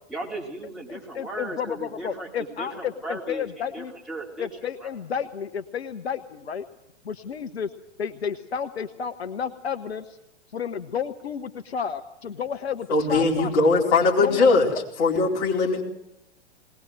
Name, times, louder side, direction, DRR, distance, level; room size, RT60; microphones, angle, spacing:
voice 1, 0.1-4.5 4.8-4.9, right 2 dB, ahead, -4 dB, 4.1 m, -36 dB
voice 2, 0.9-3.9 4.4-6.6 7.0-7.7 8.0-10.2 10.5-13.5 14.2-14.8, left 7 dB, 65° left, 9 dB, 1.1 m, -32 dB
voice 3, 12.9-14.7 15.0-15.8, left 3 dB, 35° left, -1 dB, 4.3 m, -20 dB
20.5 x 19.5 x 7.8 m, 0.85 s
figure-of-eight pair, 110°, 34 cm